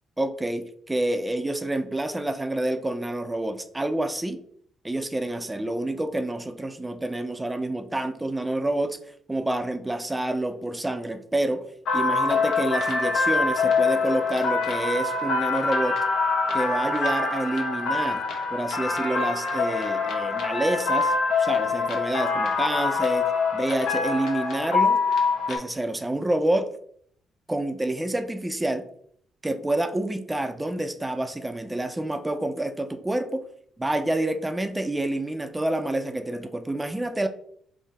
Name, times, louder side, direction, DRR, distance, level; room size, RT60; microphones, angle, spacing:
voice 1, 0.2-4.4 4.8-9.0 9.3-11.7 11.9-16.0 16.5-18.2 18.5-25.0 25.5-26.7 27.5-28.9 29.4-33.4 33.8-37.3, right 1 dB, 15° right, 8 dB, 0.5 m, -28 dB
sound 1, 11.9-25.6, left 4 dB, 75° left, 1.0 m, -25 dB
3.7 x 2.7 x 4.1 m, 0.64 s
cardioid pair, 90°, 0 cm